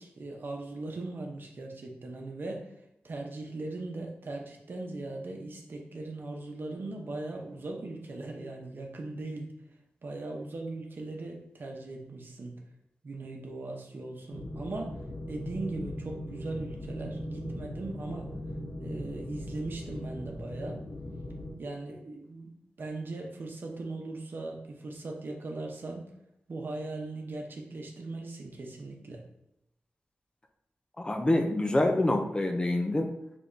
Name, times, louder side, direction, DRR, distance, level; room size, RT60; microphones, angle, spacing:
voice 1, 0.0-2.6 3.0-9.5 10.0-12.6 13.0-15.0 15.3-18.3 18.8-20.8 21.6-26.0 26.5-29.2, right 2 dB, 60° right, 1 dB, 0.8 m, -39 dB
sound 1, 14.3-21.5, left 1 dB, 80° left, 1.4 m, -39 dB
voice 2, 31.0-33.1, left 1 dB, 25° left, 5 dB, 0.4 m, -26 dB
4.7 x 3.5 x 2.7 m, 0.81 s
wide cardioid pair, 100°, 4 cm